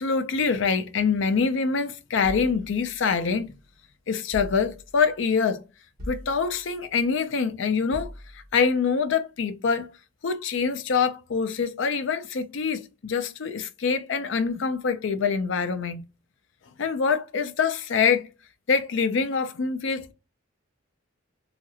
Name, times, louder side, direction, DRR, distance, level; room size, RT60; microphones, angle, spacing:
voice 1, 0.0-3.5 4.1-5.6 6.1-9.9 10.2-16.0 16.8-18.3 18.7-20.1, left 5 dB, 65° left, 0.4 m, -25 dB
sound 1, 2.2-3.6 4.3-5.2 6.0-6.9 7.9-8.7, equal, 45° right, 1.0 m, -41 dB
2.8 x 2.4 x 2.7 m
head